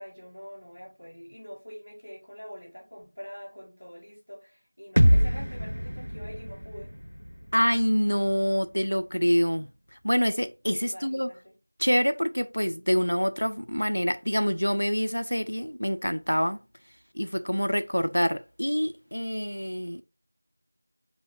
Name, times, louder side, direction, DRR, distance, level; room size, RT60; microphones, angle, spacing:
voice 1, 0.0-7.0 10.8-11.5, equal, 20° left, 0.7 m, -44 dB
sound 1, 5.0-8.9, equal, 85° right, 0.3 m, -26 dB
voice 2, 7.5-9.7 10.0-11.3 11.8-16.6 17.1-20.0, equal, 70° left, 0.4 m, -26 dB
4.4 x 2.7 x 3.0 m
figure-of-eight pair, 180°, 0 cm